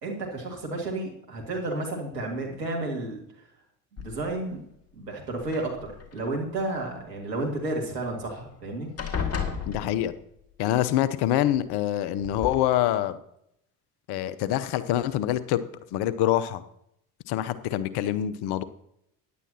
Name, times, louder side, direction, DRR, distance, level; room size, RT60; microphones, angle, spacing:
voice 1, 0.0-3.2 3.9-4.6 5.0-8.9, right 2 dB, 85° right, -1 dB, 2.3 m, -32 dB
sound 1, 4.0-4.5 5.4-6.2 8.0-8.1 8.4-8.6 9.0-10.4 11.6-11.7 12.2-12.6, left 6 dB, 30° left, 2.0 m, -33 dB
voice 2, 9.7-10.1 10.6-13.2 14.1-15.6 15.9-16.6 17.3-18.6, left 12 dB, 55° left, 15 dB, 0.9 m, -25 dB
16.5 x 10.5 x 2.9 m, 0.76 s
figure-of-eight pair, 55°, 47 cm